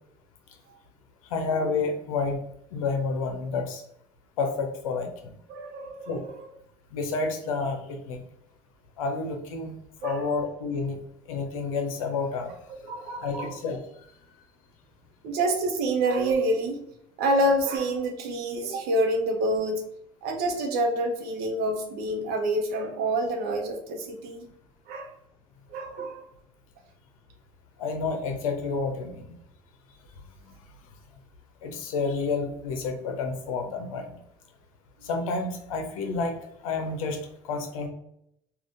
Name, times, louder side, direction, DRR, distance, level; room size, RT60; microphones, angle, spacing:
voice 1, 1.3-2.4 2.7-3.8 4.4-5.3 6.1-6.3 6.9-8.2 9.0-9.7 10.0-11.0 11.3-12.5 13.2-14.1 26.0-26.1 27.8-29.3 31.6-34.1 35.0-36.4 36.6-37.2 37.4-37.9, left 4 dB, 90° left, 5 dB, 0.6 m, -29 dB
voice 2, 5.5-6.5 10.0-10.3 12.8-13.6 15.2-16.8 17.2-19.8 20.2-24.5 24.9-25.1 25.7-26.2, right 1 dB, 70° right, 3 dB, 0.7 m, -27 dB
3.4 x 2.3 x 2.5 m, 0.74 s
hypercardioid pair, 65°, 17 cm